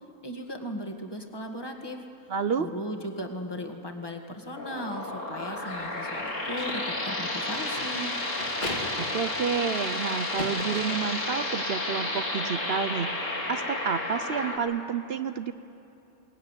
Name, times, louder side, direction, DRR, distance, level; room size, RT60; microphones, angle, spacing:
voice 1, 0.2-2.0 2.6-8.2, equal, 15° left, 4 dB, 1.7 m, -37 dB
voice 2, 2.3-2.7 9.0-13.1 13.5-15.5, right 6 dB, 55° right, 11 dB, 0.7 m, -30 dB
sound 1, 4.5-14.6, left 2 dB, 60° left, 3.1 m, -32 dB
sound 2, 5.5-9.9 10.2-11.5, left 1 dB, 35° left, 2.3 m, -39 dB
22.0 x 19.0 x 9.7 m, 2.8 s
omnidirectional pair, 1.5 m